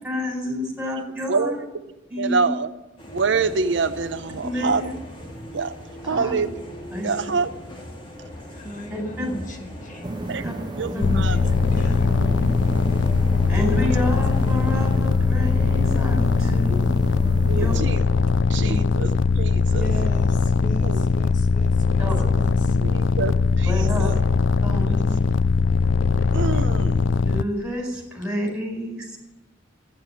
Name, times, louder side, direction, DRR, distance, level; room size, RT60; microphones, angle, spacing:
voice 1, 0.0-1.5 2.1-2.4 4.4-4.9 6.1-6.3 6.9-7.1 8.9-9.3 10.4-10.5 10.9-11.0 13.5-17.0 17.5-17.7 18.6-18.8 22.0-22.2 23.7-24.1 24.6-25.2 26.5-26.6 27.2-29.2, left 1 dB, 5° right, 0 dB, 4.4 m, -29 dB
voice 2, 1.3-1.8 2.2-2.7 3.1-4.9 5.5-5.7 6.1-6.6 7.0-7.5 10.3-10.4 10.8-11.4 12.2-12.4 17.4-18.0 18.5-19.9 20.8-21.1 22.1-22.5 22.8-24.1 24.9-25.0 26.3-27.0, right 4 dB, 75° right, 10 dB, 0.7 m, -26 dB
sound 1, 3.0-15.0, equal, 25° left, 2.3 m, -39 dB
voice 3, 8.5-10.1 10.9-12.1 13.7-14.2 19.7-22.1 22.4-22.8, equal, 45° left, 4 dB, 1.4 m, -36 dB
sound 2, 10.0-17.8, right 2 dB, 25° right, 0.5 m, -33 dB
sound 3, 11.0-27.4, left 4 dB, 80° left, 0.4 m, -20 dB
12.5 x 9.9 x 8.9 m, 1.0 s
head